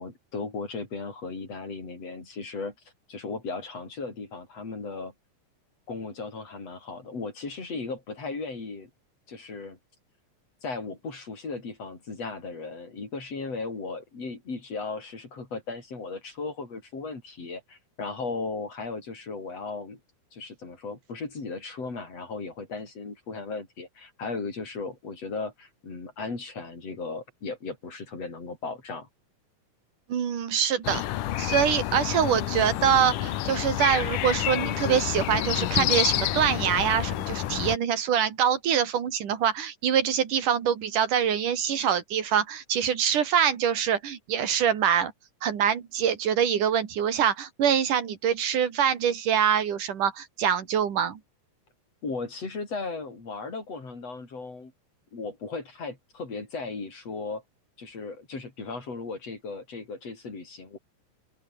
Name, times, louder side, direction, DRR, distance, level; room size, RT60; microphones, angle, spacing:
voice 1, 0.0-2.8 3.1-5.1 5.9-8.9 9.3-9.8 10.6-20.0 20.3-29.1 52.0-54.7 55.1-57.4 57.8-60.8, left 3 dB, 50° left, 6.9 m, -36 dB
voice 2, 30.1-31.0 31.4-45.1 45.4-51.2, right 8 dB, 80° right, 4.0 m, -24 dB
sound 1, 30.8-37.8, left 13 dB, 85° left, 2.8 m, -28 dB
open air
omnidirectional pair, 3.6 m